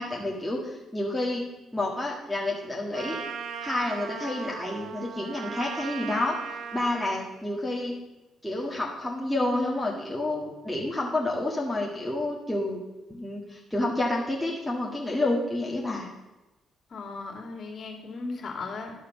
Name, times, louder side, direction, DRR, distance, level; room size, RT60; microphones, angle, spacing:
voice 1, 0.0-1.4 1.7-3.2 3.6-6.4 6.7-8.0 8.4-12.8 13.1-16.1, left 2 dB, 5° left, -4 dB, 1.6 m, -29 dB
Trumpet, 2.9-7.3, right 6 dB, 70° right, 0.7 m, -37 dB
voice 2, 16.9-18.9, left 3 dB, 50° left, 1 dB, 2.4 m, -36 dB
12.0 x 4.9 x 5.9 m, 1.0 s
cardioid pair, 90°, 0 cm